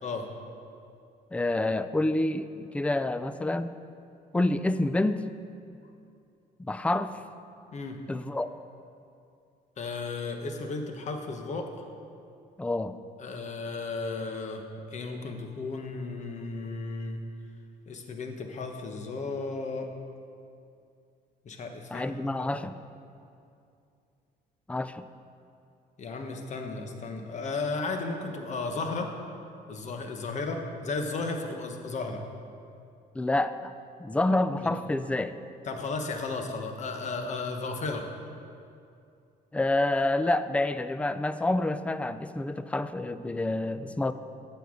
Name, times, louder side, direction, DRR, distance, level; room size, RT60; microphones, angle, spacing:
voice 1, 1.3-3.7 4.3-5.2 6.6-7.2 8.1-8.5 12.6-13.0 21.9-22.7 24.7-25.0 33.1-33.7 34.0-35.4 39.5-44.1, left 2 dB, 5° left, 12 dB, 0.3 m, -28 dB
voice 2, 9.8-11.8 13.2-14.6 14.9-17.2 17.9-19.9 21.4-22.1 22.4-22.5 26.0-29.1 29.7-32.2 34.6-34.7 35.6-38.0, left 3 dB, 45° left, 4 dB, 1.2 m, -34 dB
9.3 x 6.9 x 6.4 m, 2.5 s
cardioid pair, 110°, 17 cm